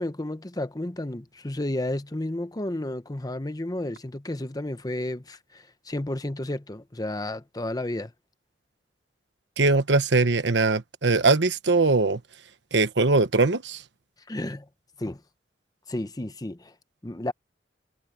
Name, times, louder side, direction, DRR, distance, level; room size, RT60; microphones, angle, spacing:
voice 1, 0.0-8.1 14.3-14.7 15.0-15.2 15.9-16.7 17.0-17.3, left 1 dB, 20° left, 0.9 m, -32 dB
voice 2, 9.6-12.2 12.7-13.8, right 3 dB, 75° right, 1.2 m, -21 dB
head